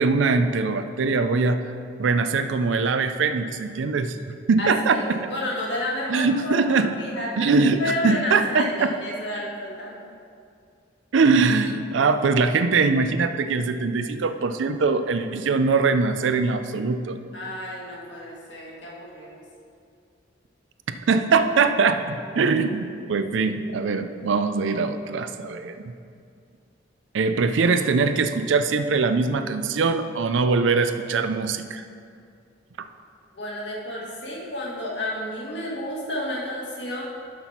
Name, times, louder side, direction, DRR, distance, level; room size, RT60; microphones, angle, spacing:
voice 1, 0.0-1.6 2.0-4.2 4.5-5.2 6.1-6.9 7.4-9.0 11.1-17.2 21.1-25.9 27.1-31.8, right 4 dB, 80° right, 9 dB, 0.4 m, -22 dB
voice 2, 4.6-7.5 7.8-10.0 17.3-19.4 33.3-37.0, left 1 dB, 65° left, -4 dB, 1.7 m, -31 dB
6.5 x 6.0 x 5.6 m, 2.3 s
head